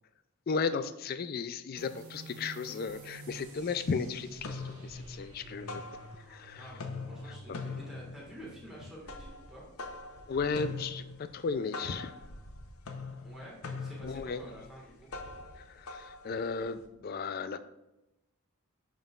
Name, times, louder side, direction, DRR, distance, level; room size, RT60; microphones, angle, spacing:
voice 1, 0.5-5.8 6.3-6.6 10.3-12.1 14.0-14.4 15.7-17.6, left 5 dB, 45° left, 12 dB, 0.3 m, -35 dB
sound 1, 1.8-9.0, right 1 dB, 85° right, 1.4 m, -50 dB
sound 2, 2.9-3.0 3.3-3.9 4.2-6.4 6.7-16.8, left 3 dB, 80° left, 0.7 m, -43 dB
voice 2, 6.5-9.6 13.2-15.1, right 1 dB, ahead, -6 dB, 1.6 m, -49 dB
10.5 x 3.8 x 2.4 m, 0.93 s
head